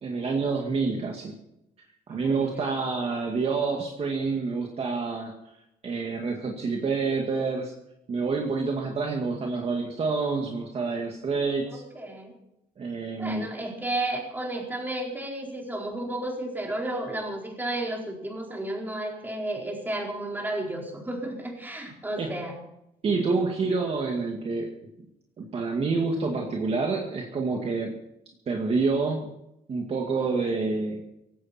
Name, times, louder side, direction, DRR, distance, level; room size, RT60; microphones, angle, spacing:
voice 1, 0.0-1.3 2.1-5.4 5.8-7.7 8.1-11.8 12.8-13.5 22.2-22.3 23.0-24.9 25.4-28.0 28.5-29.3 29.7-31.0, right 4 dB, 40° right, 1 dB, 2.2 m, -28 dB
voice 2, 9.4-10.0 11.7-12.3 13.2-22.5, right 1 dB, 10° right, -1 dB, 4.5 m, -33 dB
18.5 x 16.5 x 4.4 m, 0.84 s
cardioid pair, 135°, 15 cm